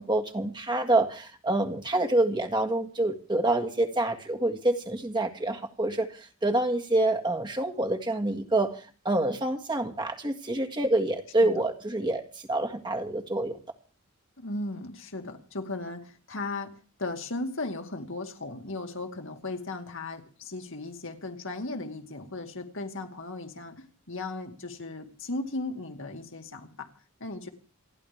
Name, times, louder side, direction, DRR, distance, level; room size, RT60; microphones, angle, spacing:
voice 1, 0.0-8.8 9.1-12.2 12.5-13.6, right 2 dB, 20° right, 4 dB, 1.8 m, -27 dB
voice 2, 14.4-16.7 17.0-26.9 27.2-27.5, left 2 dB, 60° left, 5 dB, 2.2 m, -36 dB
28.5 x 11.0 x 3.5 m, 0.41 s
head